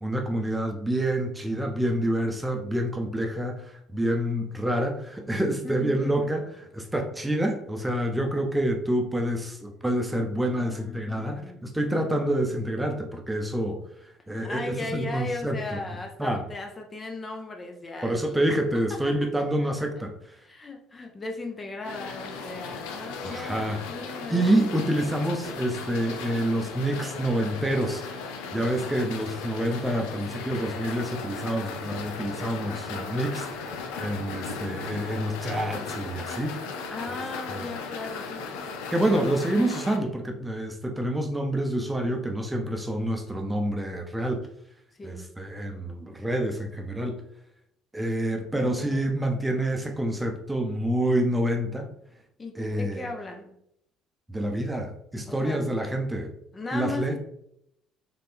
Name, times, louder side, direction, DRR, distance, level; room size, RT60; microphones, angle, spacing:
voice 1, 0.0-6.4 6.7-13.8 14.3-15.8 16.2-16.4 18.0-20.4 23.2-23.8 24.3-28.0 28.5-36.8 38.9-44.5 45.0-47.2 47.9-51.9 52.6-53.1 54.3-56.3 56.7-57.1, right 1 dB, 10° right, 3 dB, 0.7 m, -27 dB
voice 2, 5.6-6.3 10.6-11.6 14.4-18.4 18.7-19.7 20.4-24.7 36.9-38.8 44.9-45.3 48.5-49.1 52.4-53.6 55.3-56.0 56.5-57.2, left 3 dB, 25° left, 3 dB, 0.6 m, -37 dB
sound 1, 21.8-40.0, left 4 dB, 65° left, 0.4 m, -37 dB
4.1 x 3.3 x 3.4 m, 0.75 s
figure-of-eight pair, 55°, 0 cm